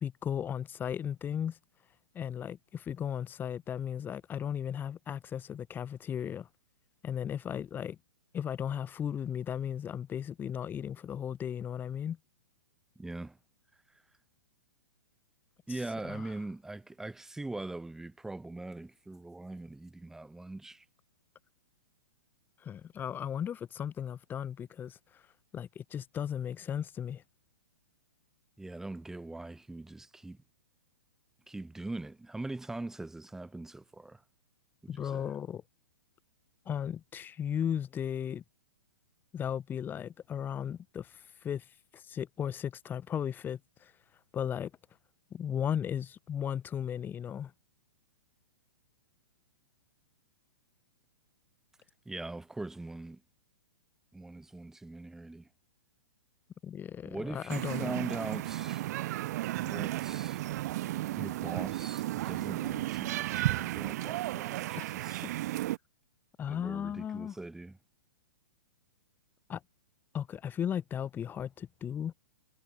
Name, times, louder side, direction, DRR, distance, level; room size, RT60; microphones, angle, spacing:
voice 1, 0.0-1.6 2.1-6.5 7.0-8.0 8.3-12.2 16.1-16.3 22.6-25.2 25.5-27.2 34.9-35.6 36.7-38.4 39.3-41.6 41.9-43.9 44.3-44.7 45.3-47.5 56.6-57.9 64.8-64.9 66.4-67.3 69.5-69.6 70.1-72.1, left 9 dB, 15° left, 1.3 m, -36 dB
voice 2, 13.0-13.4 15.7-20.8 28.6-30.4 31.5-34.2 34.8-35.3 52.1-53.2 54.1-55.5 57.0-58.8 59.6-60.5 61.1-65.2 66.5-67.8, right 2 dB, 5° right, 0.7 m, -41 dB
sound 1, 57.5-65.8, right 16 dB, 50° right, 0.9 m, -34 dB
hypercardioid pair, 135°, 11 cm